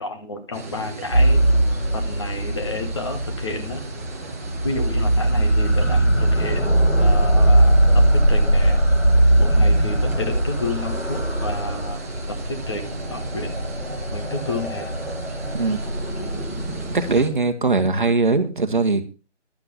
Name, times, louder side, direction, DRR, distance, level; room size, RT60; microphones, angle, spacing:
voice 1, 0.0-1.4 1.9-3.8 4.6-8.8 9.4-13.5 14.1-14.9, left 2 dB, 25° left, 5 dB, 1.4 m, -31 dB
sound 1, 0.5-17.3, right 3 dB, 15° right, 1.1 m, -37 dB
sound 2, 1.1-17.4, right 1 dB, 90° left, 3.7 m, -20 dB
voice 2, 16.9-19.0, right 3 dB, 45° right, 9 dB, 1.5 m, -20 dB
12.0 x 7.8 x 5.7 m, 0.32 s
figure-of-eight pair, 155°, 35 cm